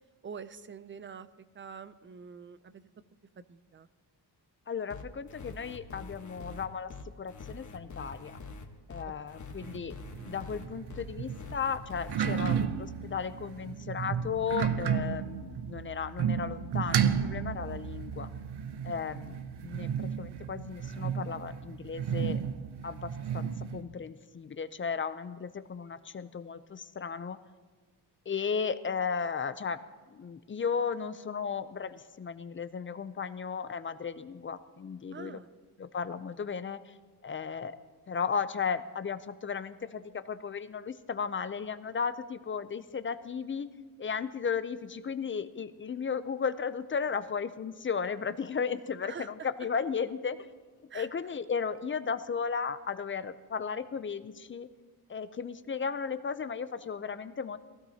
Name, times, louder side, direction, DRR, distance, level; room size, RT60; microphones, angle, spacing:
voice 1, 0.2-2.9 3.4-3.9 9.1-9.2 35.1-35.5 49.0-49.3 50.9-51.1, right 6 dB, 30° right, 14 dB, 0.4 m, -45 dB
voice 2, 4.7-6.9 7.2-8.4 8.9-18.3 18.8-22.4 22.8-27.4 28.3-29.8 30.1-35.4 35.8-36.9 37.2-37.8 38.1-43.7 44.0-50.4 50.9-54.7 55.1-57.6, left 6 dB, 30° left, 13 dB, 0.5 m, -35 dB
sound 1, 4.9-12.7, left 4 dB, 45° left, 1.2 m, -45 dB
sound 2, 9.6-23.8, right 8 dB, 70° right, 0.7 m, -33 dB
22.0 x 16.0 x 2.8 m, 1.4 s
wide cardioid pair, 155°, 40 cm